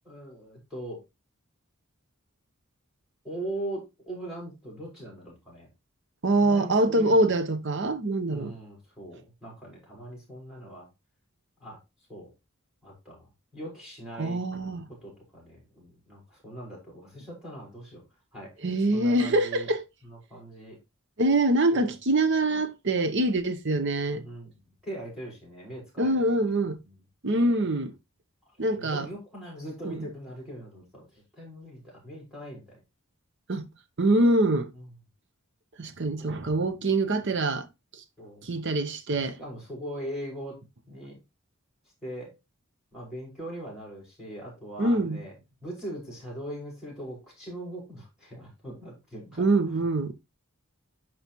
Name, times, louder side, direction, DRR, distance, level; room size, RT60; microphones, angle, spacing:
voice 1, 0.0-1.0 3.2-5.7 6.4-7.2 8.3-10.9 11.6-11.8 12.1-12.3 12.8-14.4 15.0-18.0 18.3-18.6 18.9-19.7 20.0-20.8 21.7-21.9 24.1-24.5 24.8-26.5 26.8-27.0 27.3-27.6 28.6-32.8 34.7-34.9 36.2-36.5 38.2-38.5 39.2-40.6 40.9-41.2 42.0-42.4 42.9-45.3 45.6-49.6, right 1 dB, 5° right, 5.4 m, -41 dB
voice 2, 6.2-8.5 14.2-14.9 18.6-19.8 21.2-24.2 26.0-26.8 27.2-27.9 28.6-29.1 29.8-30.1 33.5-33.7 34.0-34.7 35.8-37.7 37.9-38.0 38.4-39.4 44.8-45.2 49.4-50.1, right 2 dB, 55° right, 0.9 m, -24 dB
11.0 x 4.8 x 3.0 m
head